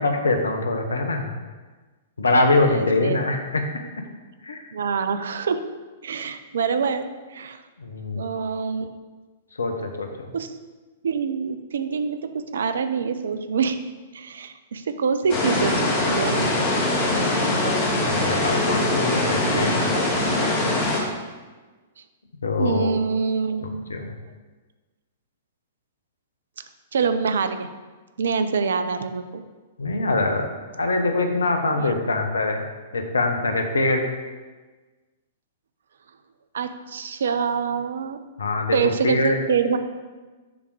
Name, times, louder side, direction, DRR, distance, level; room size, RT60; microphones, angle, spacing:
voice 1, 0.0-1.3 2.2-3.6 4.4-4.7 7.8-8.3 9.6-10.3 18.0-19.8 22.4-22.9 23.9-24.1 29.8-30.5 30.7-32.6 32.9-34.0 38.4-38.8 39.0-39.4, left 2 dB, 75° left, 5 dB, 0.8 m, -23 dB
voice 2, 2.6-3.2 4.7-5.6 6.0-7.6 8.1-8.9 10.3-10.5 11.0-13.8 14.1-15.8 16.1-16.8 19.5-19.8 22.6-24.1 26.9-27.7 28.2-29.4 31.8-31.9 36.5-38.2 38.7-39.8, right 5 dB, 60° right, 10 dB, 0.4 m, -25 dB
sound 1, 15.3-21.0, left 2 dB, 35° left, 1.8 m, -22 dB
7.1 x 3.5 x 4.8 m, 1.3 s
figure-of-eight pair, 105°, 0 cm